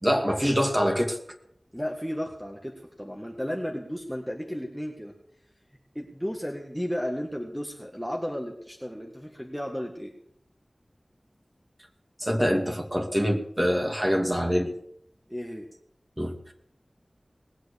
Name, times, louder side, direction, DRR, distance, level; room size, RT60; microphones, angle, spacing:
voice 1, 0.0-1.2 12.2-14.7 16.2-16.3, equal, 20° right, 3 dB, 2.5 m, -25 dB
voice 2, 1.7-5.1 6.0-10.1 15.3-15.7, equal, ahead, 2 dB, 1.7 m, -34 dB
19.5 x 7.8 x 8.4 m, 0.74 s
wide cardioid pair, 60°, 0 cm